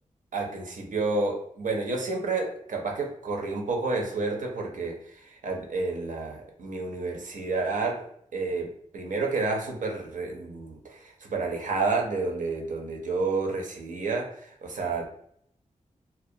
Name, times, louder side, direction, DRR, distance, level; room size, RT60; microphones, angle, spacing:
voice 1, 0.3-5.0 5.3-8.1 8.3-15.1, right 3 dB, 80° right, 1 dB, 0.6 m, -30 dB
2.4 x 2.0 x 2.6 m, 0.67 s
wide cardioid pair, 90°, 13 cm